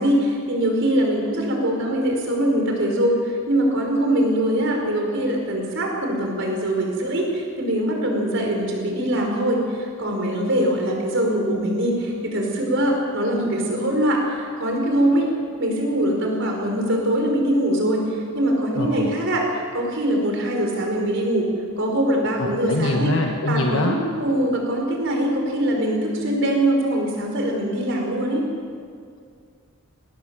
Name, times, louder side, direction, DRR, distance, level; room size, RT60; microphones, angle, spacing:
voice 1, 0.0-15.3 15.6-21.5 21.8-23.1 23.5-28.4, right 1 dB, 60° right, 1 dB, 5.0 m, -22 dB
voice 2, 18.7-19.1 22.4-23.9, left 2 dB, 60° left, 1 dB, 1.4 m, -23 dB
20.0 x 18.5 x 7.5 m, 2.2 s
head